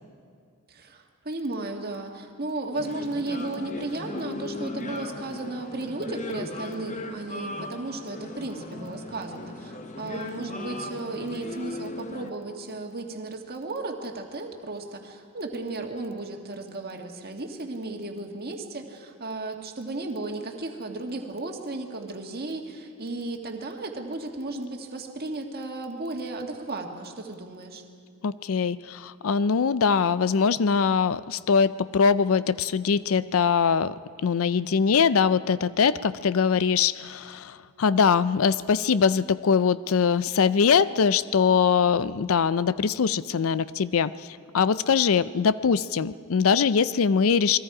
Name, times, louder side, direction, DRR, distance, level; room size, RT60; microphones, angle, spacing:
voice 1, 0.7-27.8, right 2 dB, 45° right, 2 dB, 1.8 m, -34 dB
sound 1, 2.7-12.3, left 2 dB, 35° left, 1.1 m, -37 dB
voice 2, 28.2-33.9 34.2-44.3 44.5-47.6, left 6 dB, 70° left, 16 dB, 0.5 m, -22 dB
28.5 x 21.5 x 4.9 m, 2.2 s
head